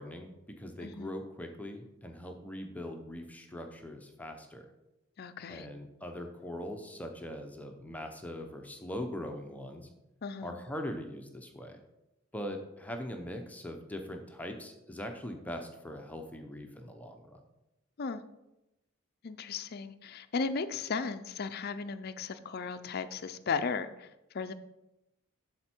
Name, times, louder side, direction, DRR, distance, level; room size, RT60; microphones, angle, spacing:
voice 1, 0.0-4.7 5.5-9.9 10.4-11.8 12.3-17.4, left 1 dB, 5° left, 4 dB, 0.7 m, -41 dB
voice 2, 0.8-1.1 5.2-5.7 10.2-10.6 18.0-18.2 19.2-24.5, left 5 dB, 45° left, 9 dB, 0.4 m, -36 dB
11.5 x 4.3 x 4.4 m, 0.92 s
head